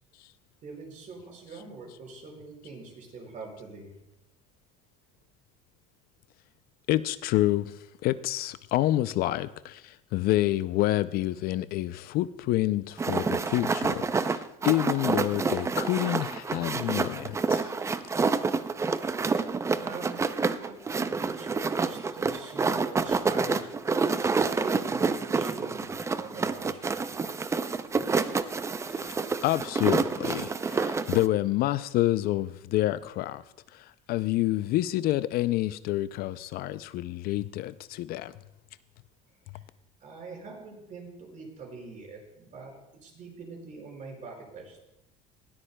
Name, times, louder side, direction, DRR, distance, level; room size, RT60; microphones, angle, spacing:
voice 1, 0.6-3.9 17.8-17.9 19.8-23.8 24.6-25.9 26.2-27.0 39.5-39.6 40.0-42.7 43.0-44.8, right 3 dB, 45° right, 5.1 m, -43 dB
voice 2, 6.9-7.7 8.0-17.7 28.9-33.4 33.7-38.3, left 15 dB, 55° left, 0.4 m, -28 dB
sound 1, 13.0-31.3, right 4 dB, 15° right, 0.4 m, -28 dB
19.0 x 13.0 x 2.2 m
cardioid pair, 120°, 18 cm